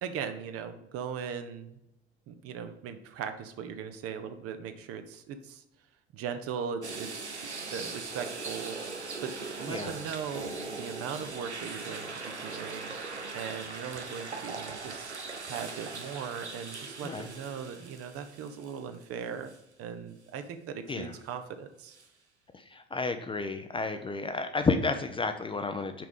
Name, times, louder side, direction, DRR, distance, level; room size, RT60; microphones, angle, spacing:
voice 1, 0.0-1.8 2.3-5.6 6.1-7.3 7.7-8.8 9.2-9.3 9.6-12.1 12.4-12.9 13.3-15.1 15.4-19.5 19.8-22.0, right 7 dB, 45° right, 8 dB, 0.9 m, -39 dB
sound 1, 6.8-19.0 19.5-19.6 21.9-22.1, right 4 dB, 90° right, 0.7 m, -40 dB
voice 2, 22.5-26.0, left 3 dB, 15° left, 7 dB, 0.6 m, -31 dB
6.0 x 4.7 x 5.2 m, 0.88 s
figure-of-eight pair, 65°, 33 cm